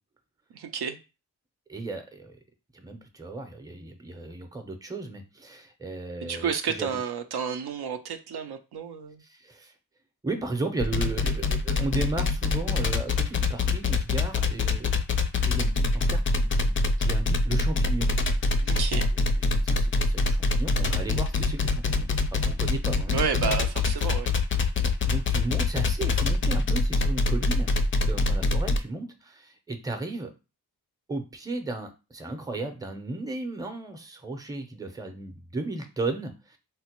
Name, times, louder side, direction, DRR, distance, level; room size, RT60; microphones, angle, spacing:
voice 1, 0.5-1.0 6.2-9.2 18.6-19.1 23.1-24.3, right 6 dB, 75° right, 7 dB, 0.5 m, -31 dB
voice 2, 1.7-2.3 2.7-6.9 9.2-9.7 10.2-14.9 15.4-18.3 18.9-19.0 19.5-23.6 24.0-24.1 25.1-27.7 28.0-30.3 31.1-36.6, right 2 dB, 10° right, 6 dB, 0.6 m, -35 dB
sound 1, 10.8-28.8, left 3 dB, 35° left, 0.4 m, -24 dB
3.7 x 2.1 x 2.9 m, 0.30 s
cardioid pair, 55°, 39 cm